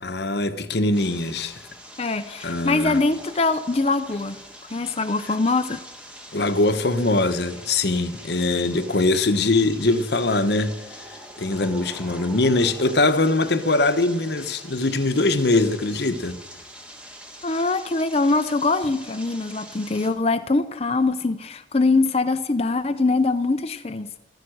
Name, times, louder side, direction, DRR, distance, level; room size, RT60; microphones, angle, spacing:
voice 1, 0.0-1.6 2.4-3.0 6.3-10.8 11.1-16.4, left 2 dB, 60° left, 1.0 m, -22 dB
sound 1, 0.9-20.1, equal, 5° right, 1.9 m, -43 dB
voice 2, 2.0-4.4 4.7-5.8 17.4-24.2, left 3 dB, 30° left, 0.6 m, -23 dB
14.5 x 14.0 x 6.4 m
head